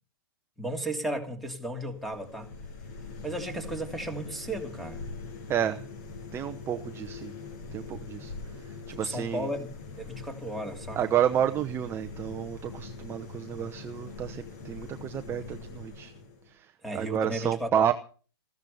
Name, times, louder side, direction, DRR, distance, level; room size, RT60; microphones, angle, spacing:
voice 1, 0.6-2.5 3.2-5.0 8.9-11.0 16.8-17.9, right 1 dB, ahead, 2.8 m, -35 dB
sound 1, 1.9-16.5, left 4 dB, 45° left, 6.8 m, -43 dB
voice 2, 5.5-5.8 6.3-7.3 7.7-8.3 8.7-9.5 11.0-16.1 16.5-17.9, right 9 dB, 20° right, 0.9 m, -30 dB
15.0 x 13.5 x 5.6 m
hypercardioid pair, 135°, 13 cm